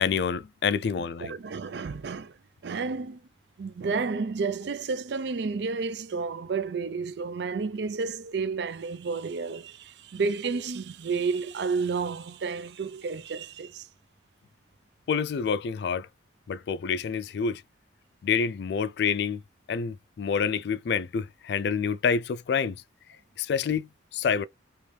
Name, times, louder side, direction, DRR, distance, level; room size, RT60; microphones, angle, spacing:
voice 1, 0.0-1.3 15.1-16.1 16.5-17.6 18.2-19.4 19.7-22.8 23.4-24.5, left 6 dB, 60° left, 0.3 m, -27 dB
voice 2, 1.2-2.4 2.6-3.2 3.6-13.9, right 4 dB, 65° right, 0.4 m, -31 dB
3.3 x 3.0 x 3.1 m
head